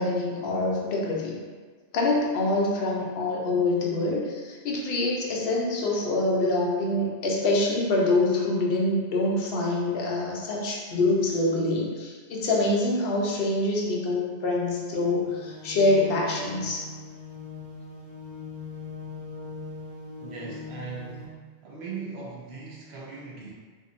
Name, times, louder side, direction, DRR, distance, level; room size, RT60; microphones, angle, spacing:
voice 1, 0.0-1.4 1.9-16.8, left 2 dB, 65° left, -2 dB, 0.7 m, -25 dB
sound 1, 15.3-21.3, left 4 dB, 45° right, 0.5 m, -40 dB
voice 2, 20.2-23.5, right 4 dB, 70° right, -4 dB, 0.9 m, -39 dB
2.6 x 2.6 x 2.4 m, 1.5 s
omnidirectional pair, 1.2 m